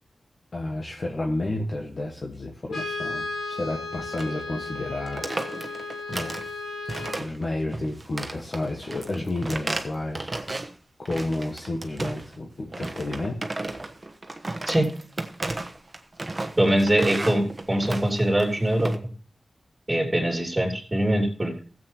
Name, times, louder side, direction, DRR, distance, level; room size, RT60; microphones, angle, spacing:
voice 1, 0.5-5.3 5.6-6.3 7.2-10.3 11.0-13.5, left 2 dB, 55° left, 0 dB, 1.4 m, -31 dB
Brass instrument, 2.7-7.3, left 3 dB, 90° left, 2.3 m, -34 dB
sound 1, 4.1-4.4 4.7-4.8 5.1-6.5 6.9-7.5 7.7-10.7 11.1-12.4 12.7-19.0, right 2 dB, 35° right, 1.1 m, -34 dB
voice 2, 16.6-18.9 19.9-21.6, right 1 dB, 15° right, 1 dB, 3.3 m, -23 dB
17.0 x 7.8 x 2.9 m, 0.39 s
wide cardioid pair, 80°, 0 cm